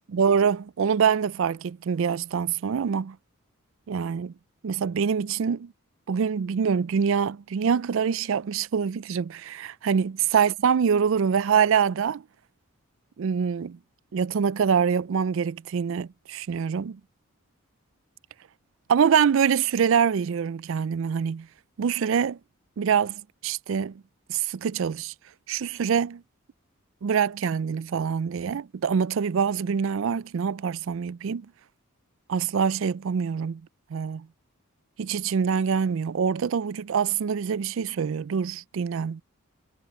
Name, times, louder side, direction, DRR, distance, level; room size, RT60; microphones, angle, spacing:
voice 1, 0.1-3.2 3.9-4.3 4.6-5.7 6.1-12.2 13.2-13.8 14.1-17.0 18.9-21.5 21.8-22.4 22.8-24.0 24.3-25.1 25.5-26.2 27.0-31.5 32.3-33.6 33.9-34.3 35.0-39.2, right 7 dB, 65° right, 0.4 m, -25 dB
head